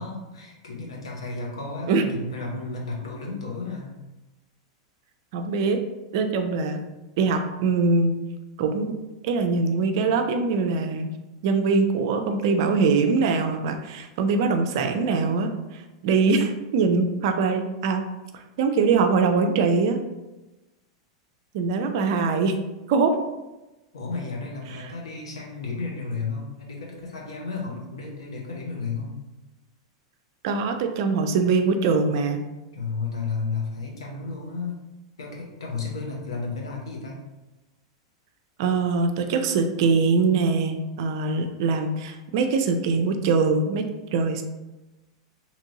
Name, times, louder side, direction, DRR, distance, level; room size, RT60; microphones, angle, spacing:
voice 1, 0.0-3.9 23.9-29.2 32.7-34.8 35.2-37.2, left 4 dB, 80° left, -2 dB, 0.8 m, -33 dB
voice 2, 5.3-5.8 6.1-6.8 7.2-8.2 8.6-8.9 9.2-11.1 11.4-18.0 18.6-20.0 21.5-22.6 22.9-23.2 30.4-32.4 38.6-43.9 44.1-44.4, right 4 dB, 55° right, 6 dB, 0.4 m, -23 dB
2.9 x 2.5 x 2.8 m, 1.1 s
hypercardioid pair, 95°, 3 cm